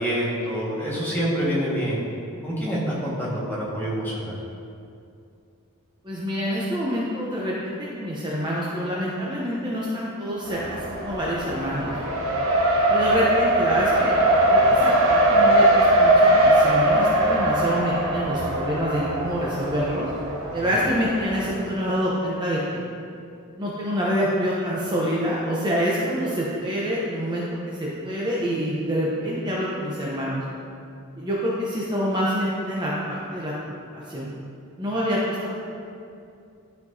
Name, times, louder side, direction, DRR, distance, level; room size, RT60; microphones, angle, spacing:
voice 1, 0.0-2.0 2.4-4.4 20.5-20.7, equal, 10° left, -7 dB, 1.6 m, -26 dB
voice 2, 6.0-11.9 12.9-14.1 14.5-20.1 20.5-22.8 23.6-30.4 31.2-33.5 33.9-34.3 34.8-35.6, equal, 20° right, -6 dB, 0.7 m, -26 dB
Race car auto racing, 10.5-21.5, right 1 dB, 65° right, 1.0 m, -21 dB
12.5 x 4.5 x 2.7 m, 2.5 s
head